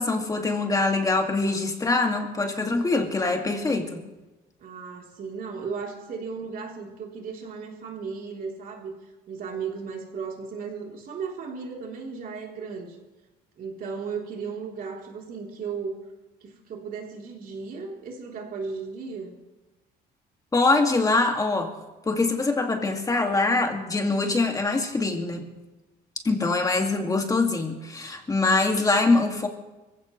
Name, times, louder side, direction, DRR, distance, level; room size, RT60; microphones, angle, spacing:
voice 1, 0.0-4.0 20.5-21.7 22.1-25.5 26.2-29.5, left 3 dB, 20° left, 3 dB, 2.3 m, -23 dB
voice 2, 4.6-13.0 13.6-16.0 16.4-19.3, right 5 dB, 55° right, 0 dB, 3.7 m, -35 dB
24.5 x 15.5 x 3.3 m, 1.1 s
cardioid pair, 110°, 17 cm